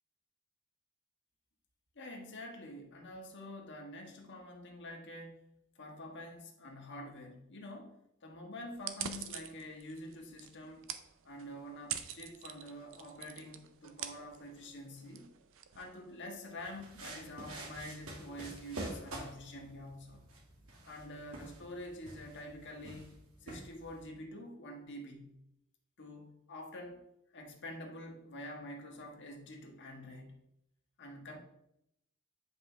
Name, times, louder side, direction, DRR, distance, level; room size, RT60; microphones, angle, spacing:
voice 1, 1.9-7.9 8.2-10.9 11.2-15.3 15.7-20.2 20.8-23.1 23.4-25.4 26.0-27.0 27.3-30.4 31.0-31.4, left 1 dB, 55° left, 2 dB, 1.4 m, -47 dB
sound 1, 8.7-16.5, right 9 dB, 65° right, 0.6 m, -46 dB
sound 2, 16.6-24.1, right 1 dB, 80° right, 2.1 m, -48 dB
9.1 x 5.3 x 3.4 m, 0.80 s
head